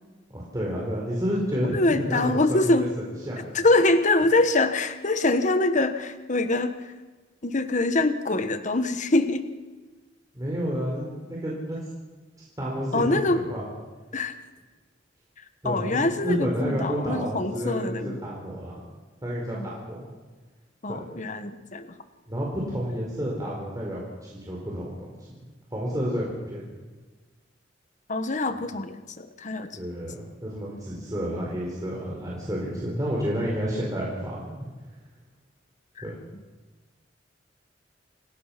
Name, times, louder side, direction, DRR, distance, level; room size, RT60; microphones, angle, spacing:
voice 1, 0.3-2.9 3.3-3.5 10.3-11.8 12.6-13.7 15.6-18.7 19.2-20.1 20.9-21.1 22.3-25.4 25.7-26.6 29.7-34.6 36.0-36.2, equal, 20° right, -4 dB, 4.5 m, -30 dB
voice 2, 1.7-2.9 3.5-6.7 7.4-9.5 12.9-13.4 14.1-14.3 15.6-18.2 19.5-19.7 20.8-21.9 28.1-29.7 36.0-36.1, left 2 dB, 40° left, 9 dB, 1.3 m, -24 dB
28.5 x 18.5 x 5.9 m, 1.3 s
head